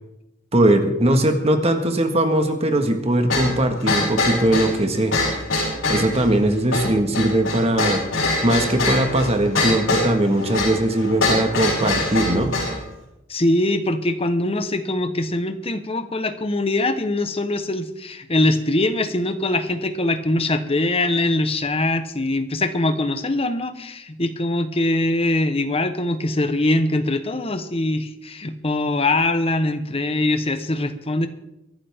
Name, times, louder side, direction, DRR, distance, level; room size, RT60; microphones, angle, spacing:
voice 1, 0.5-5.1 5.9-8.0 8.4-12.5, right 1 dB, 30° right, 5 dB, 1.6 m, -20 dB
sound 1, 3.3-12.8, left 2 dB, 65° left, 6.2 m, -23 dB
voice 2, 13.3-31.3, left 2 dB, 30° left, 9 dB, 1.0 m, -22 dB
23.5 x 11.5 x 3.6 m, 0.89 s
head